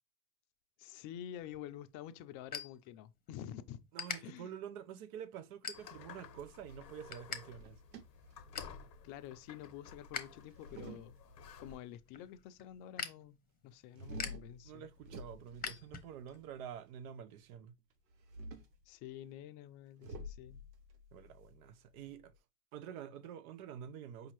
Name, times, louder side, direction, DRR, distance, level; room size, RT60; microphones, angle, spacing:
voice 1, 0.8-3.8 4.2-4.5 9.0-11.2 11.6-13.4 13.6-14.9 18.9-20.6, left 11 dB, 40° left, 0.5 m, -49 dB
sound 1, 1.4-3.4 3.7-4.2 4.7-5.0 5.5-6.2 6.6-7.4 7.7-7.8 8.2-8.8 9.3-10.2 10.6-16.4, left 6 dB, 20° left, 0.8 m, -45 dB
voice 2, 3.9-7.8 14.6-17.7 21.1-22.3 22.7-24.3, right 9 dB, 60° right, 0.7 m, -48 dB
sound 2, 5.7-11.8, left 6 dB, 85° left, 0.8 m, -54 dB
sound 3, 7.6-9.0 10.3-11.7 13.9-16.5 18.1-18.8 20.0-22.4, equal, 90° right, 0.8 m, -50 dB
5.1 x 2.7 x 3.0 m
hypercardioid pair, 90°, 49 cm